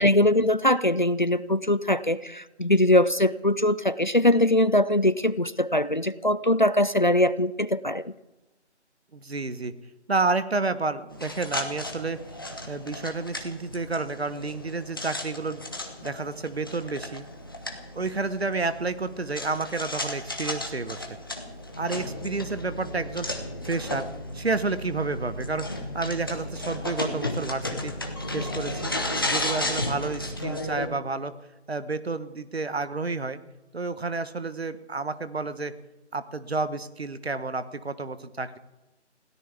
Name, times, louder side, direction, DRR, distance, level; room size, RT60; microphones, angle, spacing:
voice 1, 0.0-8.1, left 1 dB, 45° left, 17 dB, 0.4 m, -22 dB
voice 2, 9.1-9.7 10.1-12.2 12.7-15.6 16.0-17.3 17.9-21.2 21.8-23.3 23.6-24.1 24.3-25.7 25.9-27.9 28.3-28.9 29.2-31.3 31.7-33.4 33.7-35.7 36.1-38.6, right 3 dB, 60° right, 13 dB, 1.2 m, -30 dB
sound 1, 11.1-30.9, left 1 dB, 20° left, 1.1 m, -34 dB
21.5 x 16.5 x 3.5 m, 1.0 s
figure-of-eight pair, 165°, 35 cm